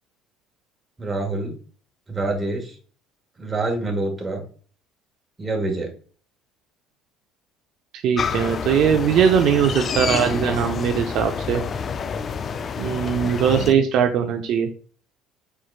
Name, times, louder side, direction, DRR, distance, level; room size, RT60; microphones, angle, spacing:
voice 1, 1.0-1.6 2.1-2.8 3.4-4.5 5.4-5.9 13.4-13.8, right 2 dB, 20° right, 2 dB, 1.5 m, -26 dB
voice 2, 8.0-11.6 12.8-14.7, right 8 dB, 65° right, 5 dB, 0.5 m, -20 dB
sound 1, 8.2-13.7, left 6 dB, 40° left, 0.3 m, -28 dB
4.5 x 4.5 x 2.4 m, 0.41 s
supercardioid pair, 95°, 0 cm